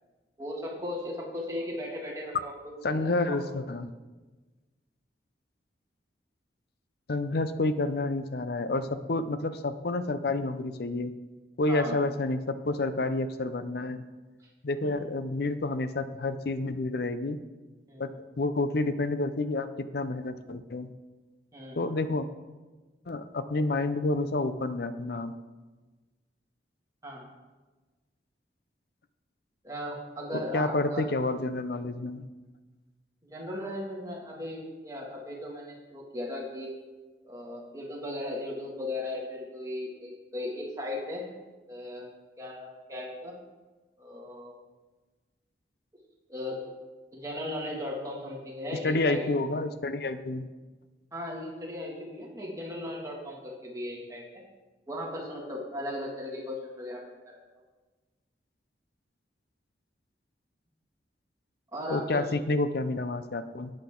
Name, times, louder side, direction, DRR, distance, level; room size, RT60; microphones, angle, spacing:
voice 1, 0.4-3.4 7.3-7.4 11.7-12.0 14.4-14.5 14.8-14.9 17.9-18.1 21.5-21.8 27.0-27.3 29.6-31.1 33.2-36.7 37.2-41.3 41.7-42.1 42.4-43.4 44.0-44.6 46.3-46.7 47.1-49.4 51.1-54.4 54.9-57.4 61.7-62.2, left 1 dB, 20° right, -3 dB, 2.2 m, -37 dB
voice 2, 2.8-3.9 7.1-11.1 11.6-14.0 14.6-17.4 18.0-20.9 21.8-22.3 23.1-25.3 30.3-32.3 48.8-50.5 61.9-63.7, left 2 dB, 60° left, 12 dB, 0.6 m, -29 dB
11.5 x 9.0 x 3.8 m, 1.2 s
head